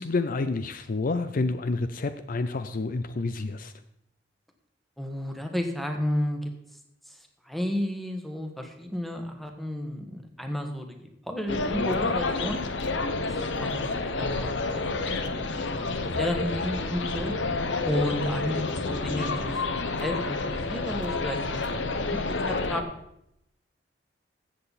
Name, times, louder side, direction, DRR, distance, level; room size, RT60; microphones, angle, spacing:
voice 1, 0.0-3.7, left 3 dB, 50° left, 11 dB, 0.5 m, -29 dB
voice 2, 5.0-6.8 7.1-12.6 13.2-17.3 17.8-22.8, left 1 dB, ahead, 4 dB, 1.4 m, -33 dB
sound 1, 11.5-22.8, left 3 dB, 80° left, 1.0 m, -29 dB
15.0 x 7.7 x 4.2 m, 0.78 s
head